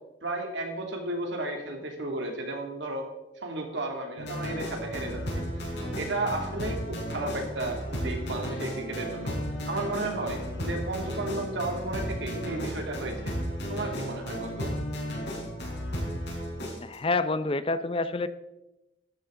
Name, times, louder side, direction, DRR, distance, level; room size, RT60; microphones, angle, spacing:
voice 1, 0.2-3.1 3.4-5.2 6.0-9.4 9.7-13.4 13.7-14.7, right 2 dB, 90° right, 2 dB, 2.5 m, -33 dB
sound 1, 4.2-16.9, equal, 70° left, 4.9 m, -34 dB
voice 2, 16.8-18.3, left 3 dB, 30° left, 13 dB, 0.6 m, -28 dB
13.0 x 10.5 x 3.8 m, 0.95 s
head